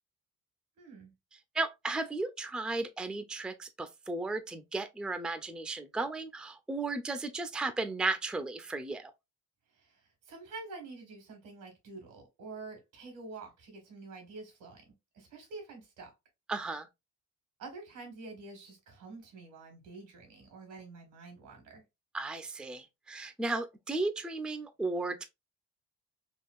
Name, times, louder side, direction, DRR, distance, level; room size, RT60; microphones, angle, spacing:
voice 1, 0.8-1.1 9.7-16.1 17.6-21.8, right 3 dB, 85° right, 1.6 m, -48 dB
voice 2, 1.5-9.1 16.5-16.9 22.1-25.2, right 3 dB, 5° right, 0.4 m, -35 dB
3.6 x 2.3 x 2.3 m
cardioid pair, 90°, 30 cm